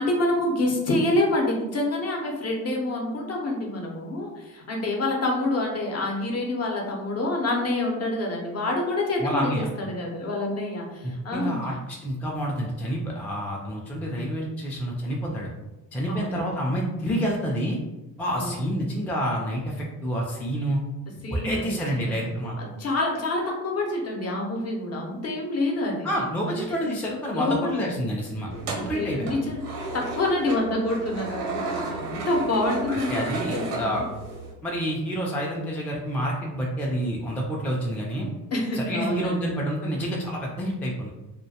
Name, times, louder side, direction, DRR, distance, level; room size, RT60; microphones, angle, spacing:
voice 1, 0.0-11.8 16.1-16.5 18.3-18.6 21.2-26.1 26.5-26.6 27.3-27.9 28.6-29.6 29.9-34.0 38.5-39.5, left 2 dB, 40° left, 0 dB, 0.7 m, -27 dB
voice 2, 9.2-9.7 11.0-15.5 15.9-17.8 18.2-20.8 21.3-22.6 26.0-29.3 33.1-34.0 34.6-38.3 38.7-41.1, equal, 5° left, -3 dB, 0.4 m, -28 dB
sound 1, 28.5-34.5, right 3 dB, 90° right, 0.7 m, -33 dB
2.2 x 2.1 x 2.8 m, 1.0 s
supercardioid pair, 75°, 39 cm